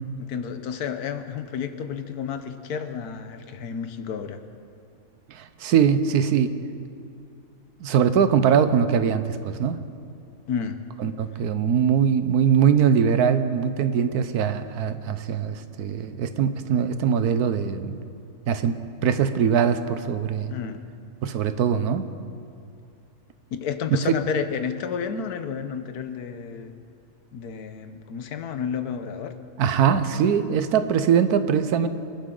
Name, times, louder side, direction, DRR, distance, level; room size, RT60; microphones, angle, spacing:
voice 1, 0.2-4.4 10.5-10.8 20.5-20.8 23.6-26.7 27.3-29.3, left 7 dB, 85° left, 8 dB, 1.4 m, -31 dB
voice 2, 5.3-6.5 7.8-9.8 11.0-18.0 18.5-18.7 19.0-20.5 21.2-22.1 29.6-31.9, right 7 dB, 85° right, 10 dB, 1.3 m, -22 dB
24.5 x 12.0 x 3.9 m, 2.4 s
omnidirectional pair, 1.6 m